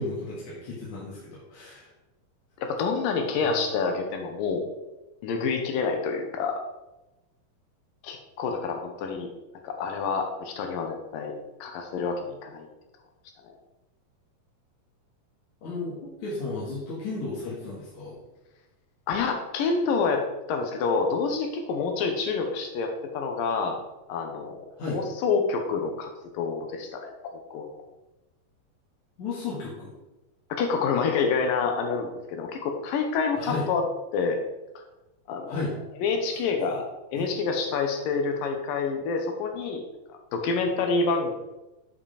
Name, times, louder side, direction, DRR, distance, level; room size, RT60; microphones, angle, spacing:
voice 1, 0.0-1.9 15.6-18.2 24.8-25.0 29.2-29.9 33.4-33.7 35.5-35.7 37.1-37.3, left 3 dB, 60° left, -7 dB, 2.8 m, -34 dB
voice 2, 2.6-4.6 5.2-6.6 8.0-9.3 9.6-11.4 11.6-12.7 19.1-23.8 24.1-27.7 30.5-33.8 34.1-34.4 35.3-35.6 36.0-36.9 37.1-39.8 40.1-41.3, left 4 dB, 75° left, 4 dB, 2.6 m, -28 dB
8.7 x 5.1 x 5.0 m, 1.0 s
omnidirectional pair, 4.2 m